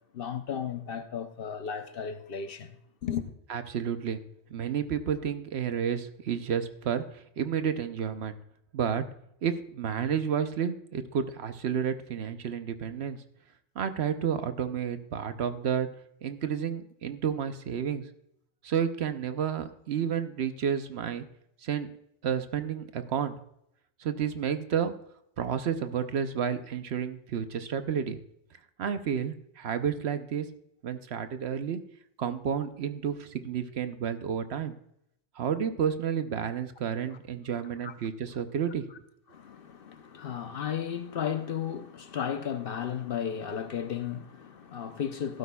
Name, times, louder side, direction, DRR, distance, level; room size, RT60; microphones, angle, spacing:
voice 1, 0.1-3.2 37.8-37.9 39.3-45.4, left 8 dB, 55° left, 0.8 m, -34 dB
voice 2, 3.5-4.2 4.5-8.4 8.7-9.0 9.4-13.2 13.8-15.9 16.2-18.1 18.6-21.2 21.6-21.9 22.2-23.4 24.0-24.9 25.4-28.2 28.8-30.5 30.8-31.8 32.2-34.8 35.4-38.8, right 8 dB, 65° right, 0.9 m, -31 dB
14.5 x 12.5 x 2.3 m
omnidirectional pair, 1.2 m